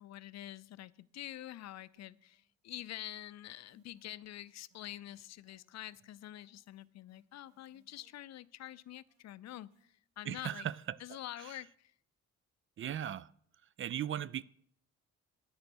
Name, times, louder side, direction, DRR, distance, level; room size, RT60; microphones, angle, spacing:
voice 1, 0.0-10.7 11.0-11.9, left 13 dB, 60° left, 0.5 m, -47 dB
sound 1, 2.0-2.5 2.7-9.8, right 4 dB, 85° right, 3.0 m, -72 dB
voice 2, 10.3-10.7 12.8-13.3 13.8-14.4, right 10 dB, 45° right, 0.4 m, -37 dB
9.6 x 6.6 x 6.2 m
cardioid pair, 90°, 30 cm